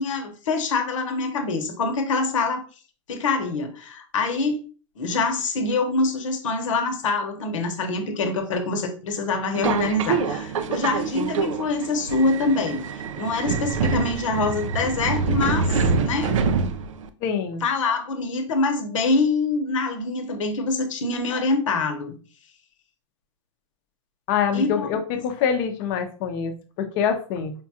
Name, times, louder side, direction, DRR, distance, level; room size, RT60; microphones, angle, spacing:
voice 1, 0.0-2.6 3.1-4.6 5.0-16.4 17.6-22.2 24.5-24.9, left 3 dB, 85° left, 6 dB, 0.9 m, -25 dB
Subway metro underground, 9.5-17.1, right 5 dB, 85° right, 0.5 m, -25 dB
voice 2, 17.2-17.6 24.3-27.5, left 7 dB, 40° left, 7 dB, 0.6 m, -25 dB
5.1 x 2.3 x 2.8 m, 0.37 s
hypercardioid pair, 145°, 16 cm